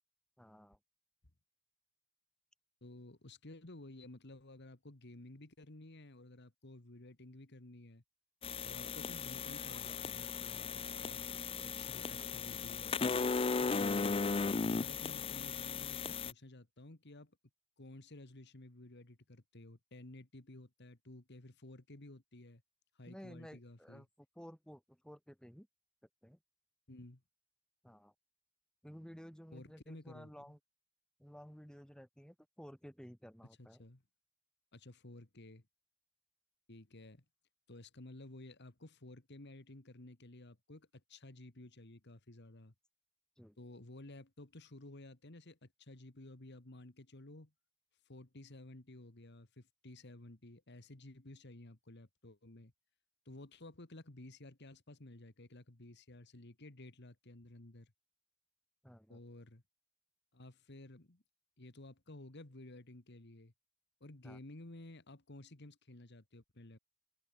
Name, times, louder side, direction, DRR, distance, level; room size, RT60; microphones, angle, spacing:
voice 1, 0.4-0.8 23.0-24.1 24.4-25.7 26.2-26.4 27.8-28.1 28.8-30.6 31.2-33.8 43.4-43.6 58.8-59.2 64.2-64.4, equal, 5° left, 2.5 m, -54 dB
voice 2, 2.8-8.0 8.6-11.3 11.6-13.0 14.6-17.4 17.8-22.6 23.0-24.1 26.9-27.2 29.5-30.3 33.6-34.0 34.7-35.6 36.7-37.2 37.7-42.7 43.6-47.5 48.1-52.7 53.3-57.9 59.1-59.6 60.3-61.2 61.6-63.5 64.0-66.8, left 1 dB, 55° left, 1.8 m, -54 dB
sound 1, 8.4-16.3, left 5 dB, 25° left, 0.4 m, -36 dB
head